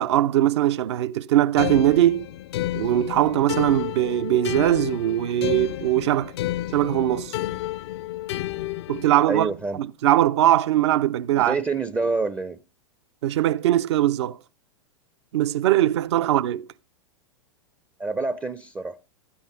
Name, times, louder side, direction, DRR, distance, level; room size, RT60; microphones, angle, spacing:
voice 1, 0.0-2.3 2.7-6.3 6.7-7.4 8.9-9.5 9.8-11.6 13.2-14.4 15.3-16.6, right 13 dB, 55° right, 0.6 m, -21 dB
sound 1, 1.6-9.2, left 15 dB, 55° left, 0.5 m, -31 dB
voice 2, 9.3-9.8 11.4-12.6 18.0-19.0, right 3 dB, 10° right, 0.5 m, -27 dB
13.5 x 8.5 x 3.9 m
figure-of-eight pair, 100°, 17 cm